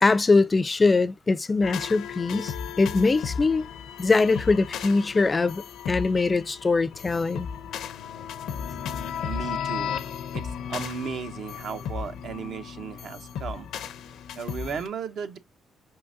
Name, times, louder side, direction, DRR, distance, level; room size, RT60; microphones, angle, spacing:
voice 1, 0.0-3.7 4.0-7.5, left 3 dB, 25° left, 0.3 m, -22 dB
sound 1, 1.6-14.9, left 8 dB, 80° left, 0.5 m, -35 dB
voice 2, 9.2-10.0 10.3-13.7 14.3-15.4, right 6 dB, 65° right, 0.7 m, -35 dB
5.1 x 3.8 x 2.4 m
cardioid pair, 90°, 0 cm